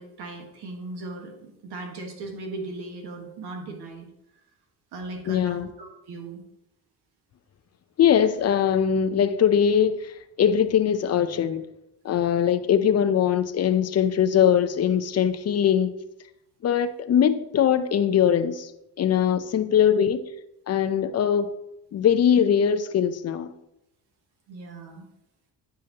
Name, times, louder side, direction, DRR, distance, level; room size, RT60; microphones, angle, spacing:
voice 1, 0.0-4.1 4.9-6.4 24.5-25.1, right 2 dB, 75° right, 1.5 m, -38 dB
voice 2, 5.3-5.7 8.0-10.1 10.4-11.6 12.0-15.9 16.6-18.7 19.0-20.2 20.7-21.5 21.9-23.5, left 8 dB, 40° left, 0.6 m, -21 dB
9.7 x 5.0 x 2.9 m
cardioid pair, 90°, 39 cm